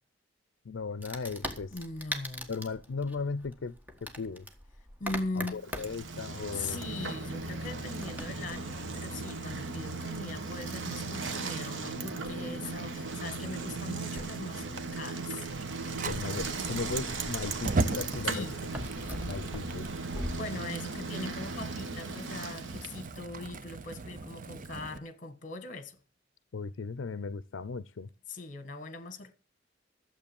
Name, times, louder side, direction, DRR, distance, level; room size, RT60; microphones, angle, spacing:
voice 1, 0.7-1.7 2.5-4.5 5.4-6.8 16.0-18.5 19.3-19.9 26.5-28.1, left 4 dB, 80° left, 0.5 m, -37 dB
Wood, 1.0-20.3, equal, 10° right, 1.5 m, -44 dB
voice 2, 1.7-2.5 5.0-5.6 6.5-15.5 18.3-18.6 20.2-26.0 28.3-29.3, left 2 dB, 45° left, 1.5 m, -40 dB
Bicycle, 5.6-23.2, right 3 dB, 75° right, 1.2 m, -37 dB
Fire, 16.0-25.0, right 3 dB, 45° right, 0.6 m, -38 dB
12.5 x 7.6 x 7.0 m
head